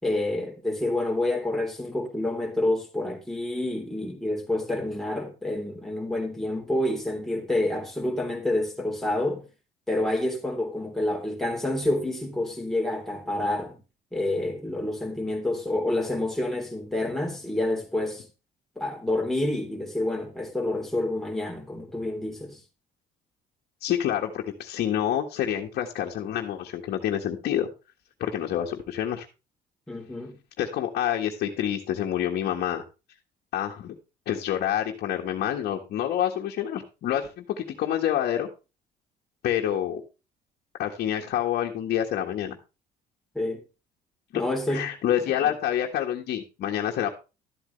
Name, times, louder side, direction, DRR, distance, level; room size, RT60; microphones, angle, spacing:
voice 1, 0.0-9.5 9.9-13.8 14.1-18.3 18.7-22.6 29.9-30.4 43.3-43.6 44.3-44.9 45.4-45.5, left 1 dB, ahead, 3.4 m, -28 dB
voice 2, 23.8-27.7 28.2-29.2 30.6-32.8 33.5-34.0 34.3-38.5 39.4-40.0 40.8-42.6 44.3-44.4 44.7-47.1, left 10 dB, 70° left, 1.5 m, -27 dB
12.5 x 8.2 x 3.3 m
cardioid pair, 110°, 17 cm